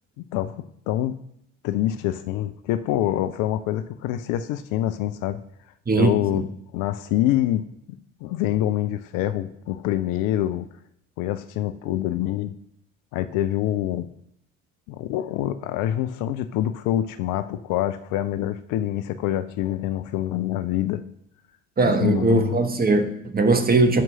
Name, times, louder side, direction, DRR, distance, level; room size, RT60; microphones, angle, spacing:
voice 1, 0.3-1.2 1.6-5.4 6.0-6.5 6.7-7.6 8.2-10.7 11.2-12.6 13.1-14.1 14.9-21.0 21.8-22.6, left 12 dB, 55° left, 0.7 m, -25 dB
voice 2, 5.9-6.2 21.8-24.0, right 3 dB, 25° right, 1.4 m, -20 dB
11.5 x 4.6 x 6.3 m
figure-of-eight pair, 60°, 38 cm